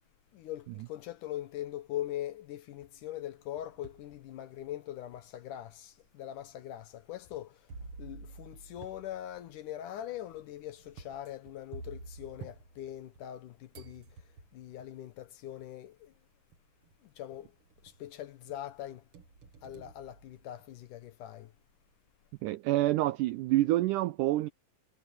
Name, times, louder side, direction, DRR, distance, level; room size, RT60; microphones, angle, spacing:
voice 1, 0.3-16.1 17.0-17.6 17.8-19.1 19.6-21.5, left 12 dB, 70° left, 2.3 m, -42 dB
sound 1, 3.2-4.1 4.7-4.8 5.7-5.8 7.7-13.4 13.7-14.7 15.9-16.0 16.5-16.9 17.3-18.1 18.5-20.9, right 3 dB, 45° right, 2.3 m, -50 dB
voice 2, 22.4-24.5, right 16 dB, 90° right, 1.8 m, -27 dB
omnidirectional pair, 4.2 m